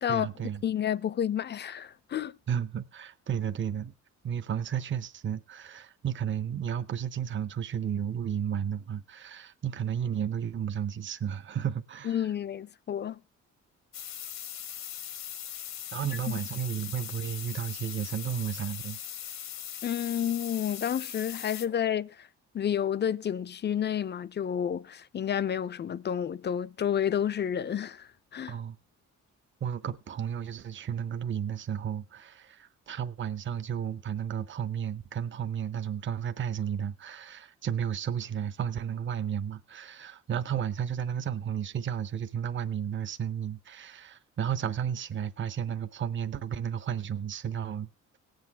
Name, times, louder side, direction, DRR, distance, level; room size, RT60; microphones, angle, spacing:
voice 1, 0.1-0.6 2.5-3.9 4.2-12.3 15.9-19.0 28.5-28.8 29.6-47.9, right 8 dB, 40° right, 0.8 m, -33 dB
voice 2, 0.6-2.4 12.0-13.2 19.8-22.3 22.5-28.6, left 9 dB, 35° left, 0.5 m, -30 dB
sound 1, 13.9-21.7, left 10 dB, 65° left, 0.9 m, -40 dB
18.0 x 7.9 x 3.5 m
cardioid pair, 90°, 30 cm